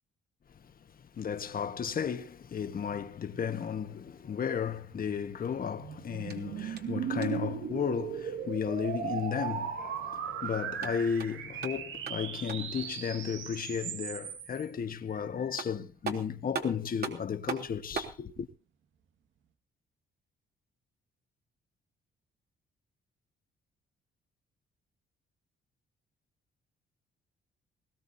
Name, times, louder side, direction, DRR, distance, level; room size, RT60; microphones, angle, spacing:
voice 1, 1.1-18.5, left 7 dB, 45° left, 1.5 m, -34 dB
sound 1, 4.9-14.6, right 9 dB, 80° right, 2.0 m, -38 dB
sound 2, 6.3-7.6 10.6-12.8 15.1-15.2 15.6-18.2, right 5 dB, 50° right, 3.4 m, -40 dB
20.5 x 18.0 x 2.8 m
cardioid pair, 90°, 20 cm